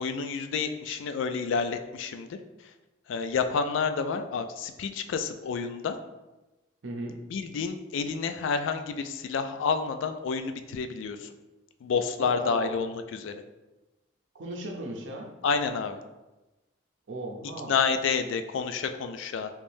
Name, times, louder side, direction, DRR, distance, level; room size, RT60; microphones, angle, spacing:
voice 1, 0.0-2.4 3.1-6.0 7.3-11.3 11.8-13.3 15.4-16.0 17.7-19.5, left 5 dB, 75° left, 8 dB, 0.3 m, -29 dB
voice 2, 6.8-7.2 12.2-12.8 14.3-15.3 17.1-17.7, right 2 dB, 70° right, 0 dB, 0.6 m, -36 dB
3.3 x 3.2 x 2.6 m, 1.1 s
head